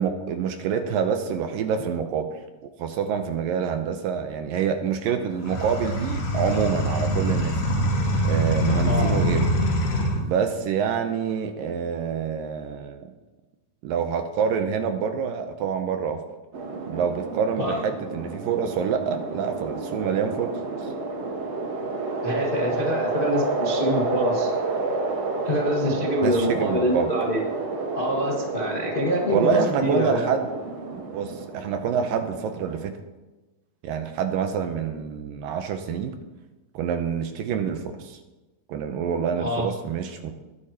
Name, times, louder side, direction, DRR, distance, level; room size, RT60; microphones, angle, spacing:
voice 1, 0.0-2.3 2.8-7.6 8.2-9.5 10.2-13.1 13.8-16.2 16.9-20.5 20.8-20.9 26.2-27.1 29.3-30.5 30.9-33.0 33.8-36.2 36.7-38.2 38.7-40.3, right 7 dB, 75° right, 7 dB, 2.2 m, -27 dB
sound 1, 5.4-10.2, equal, 90° left, 4.4 m, -24 dB
sound 2, 16.5-32.9, right 3 dB, 55° right, 2.0 m, -30 dB
voice 2, 22.2-24.5 25.4-27.4 27.9-30.3 39.3-39.7, equal, 55° left, -3 dB, 0.6 m, -25 dB
21.0 x 9.8 x 2.9 m, 1.1 s
omnidirectional pair, 4.5 m